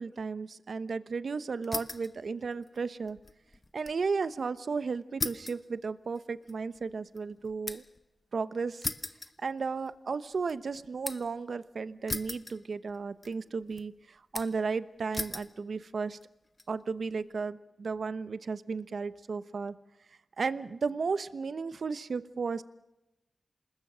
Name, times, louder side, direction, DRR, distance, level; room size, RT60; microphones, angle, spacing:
voice 1, 0.0-3.2 3.7-7.8 8.3-8.9 9.4-16.2 16.7-19.7 20.4-22.6, right 4 dB, 75° right, 14 dB, 1.0 m, -34 dB
sound 1, 1.6-2.2 2.5-4.0 4.3-4.4 5.2-8.0 8.8-10.0 10.3-11.4 12.1-13.0 13.2-13.8 14.3-14.7 15.1-15.5 16.2-16.6, left 2 dB, 35° left, 1.2 m, -39 dB
27.0 x 20.5 x 6.3 m, 0.94 s
cardioid pair, 50°, 0 cm